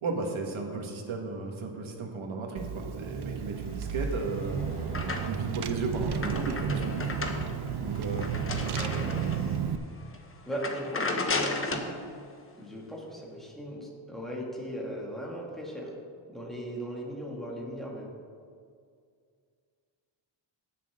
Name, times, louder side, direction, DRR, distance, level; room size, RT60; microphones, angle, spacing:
voice 1, 0.0-4.8 5.2-7.3 7.8-8.4, right 3 dB, 70° right, 1 dB, 1.9 m, -34 dB
Car / Engine, 2.6-9.8, right 7 dB, 55° right, 0.7 m, -33 dB
sound 1, 4.0-5.6 5.9-9.6 10.0-10.2 10.5-11.9, left 3 dB, 25° left, 1.0 m, -34 dB
voice 2, 8.8-9.3 10.5-11.9 12.6-15.9 16.3-18.1, equal, ahead, -3 dB, 2.2 m, -38 dB
17.5 x 6.9 x 3.8 m, 2.2 s
wide cardioid pair, 130°, 49 cm